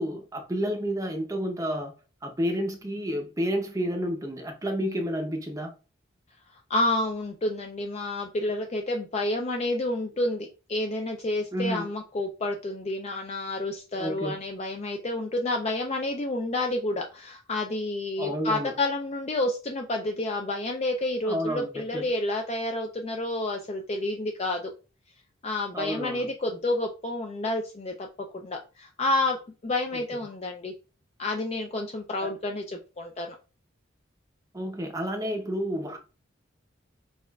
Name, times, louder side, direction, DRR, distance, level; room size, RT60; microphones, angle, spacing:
voice 1, 0.0-1.9 2.2-5.7 11.5-11.9 14.0-14.4 18.2-18.7 21.3-22.1 25.7-26.3 29.9-30.0 32.2-32.3 34.5-36.0, equal, 15° right, 0.5 m, -30 dB
voice 2, 6.7-24.7 25.4-28.1 28.3-29.4 29.6-30.7 31.2-33.4, left 2 dB, 30° left, 0.3 m, -29 dB
6.3 x 2.4 x 2.3 m
head